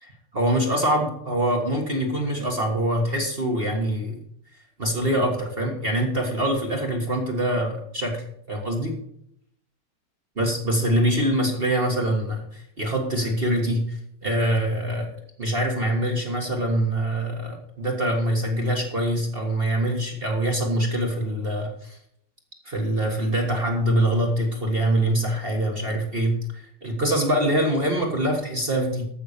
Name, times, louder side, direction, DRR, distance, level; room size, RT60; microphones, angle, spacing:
voice 1, 0.0-4.2 4.8-8.9 10.4-15.1 15.4-22.0 22.7-29.1, right 1 dB, 30° right, 1 dB, 1.8 m, -24 dB
14.0 x 6.0 x 6.7 m, 0.72 s
omnidirectional pair, 2.4 m